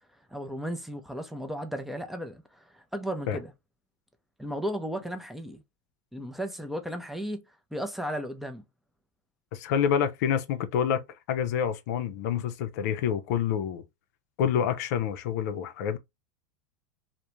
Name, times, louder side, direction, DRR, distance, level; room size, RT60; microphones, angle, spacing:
voice 1, 0.3-3.5 4.4-5.6 6.1-7.4 7.7-8.6, equal, ahead, 0.5 m, -35 dB
voice 2, 9.5-13.8 14.4-16.0, left 8 dB, 70° left, 0.5 m, -27 dB
2.4 x 2.1 x 2.9 m
hypercardioid pair, 110°, 9 cm